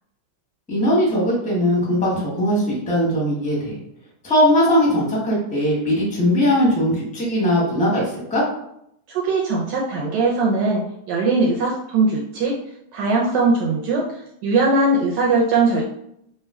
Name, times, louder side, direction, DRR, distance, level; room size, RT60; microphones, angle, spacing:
voice 1, 0.7-3.7 4.2-8.4, equal, 10° left, -5 dB, 0.4 m, -19 dB
voice 2, 9.1-10.8 11.1-12.5 12.9-14.1 14.4-15.8, right 3 dB, 75° right, -3 dB, 1.1 m, -20 dB
3.1 x 2.2 x 3.4 m, 0.75 s
omnidirectional pair, 2.1 m